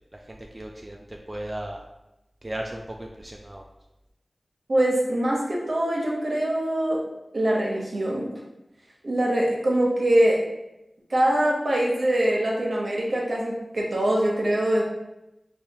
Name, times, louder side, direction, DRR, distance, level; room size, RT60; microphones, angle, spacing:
voice 1, 0.3-1.0 1.3-1.8 2.4-3.6, right 1 dB, 30° right, 1 dB, 0.3 m, -35 dB
voice 2, 4.7-7.0 7.3-8.3 9.0-10.4 11.1-14.8, right 1 dB, 65° right, -3 dB, 0.9 m, -23 dB
4.8 x 2.4 x 2.8 m, 0.94 s
wide cardioid pair, 50°, 0 cm